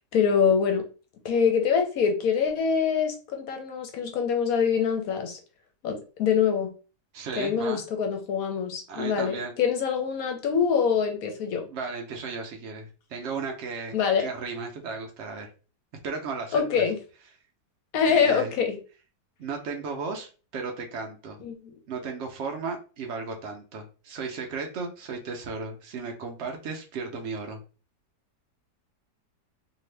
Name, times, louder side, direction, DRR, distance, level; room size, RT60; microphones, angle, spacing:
voice 1, 0.1-0.9 1.2-5.4 5.8-6.7 7.4-11.6 13.9-14.2 16.5-17.0 17.9-18.8 21.4-21.7, left 6 dB, 70° left, 0.9 m, -24 dB
voice 2, 7.1-7.8 8.9-9.5 11.7-15.5 16.0-16.8 18.0-18.5 19.4-21.4 21.9-27.6, right 4 dB, 85° right, 0.6 m, -35 dB
2.7 x 2.5 x 3.2 m
omnidirectional pair, 1.9 m